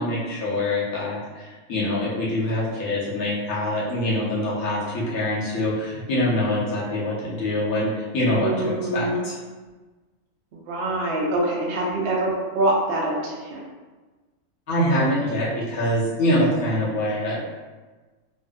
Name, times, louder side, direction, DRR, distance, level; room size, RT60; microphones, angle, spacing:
voice 1, 0.0-9.4 14.7-17.4, left 1 dB, 85° left, -7 dB, 1.3 m, -24 dB
voice 2, 8.3-9.2 10.7-13.6, right 1 dB, 55° right, -3 dB, 0.7 m, -25 dB
3.3 x 2.5 x 2.3 m, 1.3 s
omnidirectional pair, 1.4 m